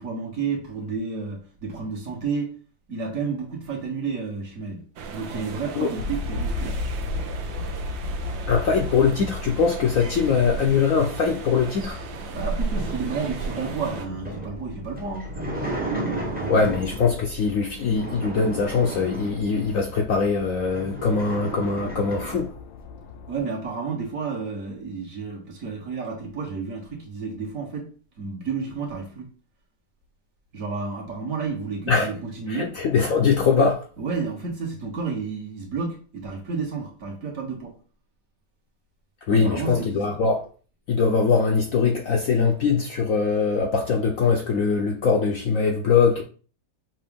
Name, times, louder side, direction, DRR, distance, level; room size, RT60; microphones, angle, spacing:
voice 1, 0.0-2.5 2.9-4.9 5.1-6.8 12.3-15.3 23.3-27.9 28.2-29.3 30.5-32.7 34.0-37.7 39.3-40.0, right 5 dB, 50° right, 1.3 m, -31 dB
sound 1, 5.0-14.1, right 4 dB, 80° right, 0.6 m, -35 dB
sound 2, 6.0-23.4, left 2 dB, 85° left, 1.3 m, -36 dB
voice 2, 8.5-12.0 16.5-22.5 31.9-32.1 32.5-33.8 39.3-40.4 40.9-46.2, left 5 dB, 65° left, 0.9 m, -22 dB
sound 3, 12.1-17.2 17.8-19.8 20.3-20.4 20.6-22.5, right 2 dB, 10° right, 0.6 m, -34 dB
5.8 x 2.6 x 3.5 m
omnidirectional pair, 2.0 m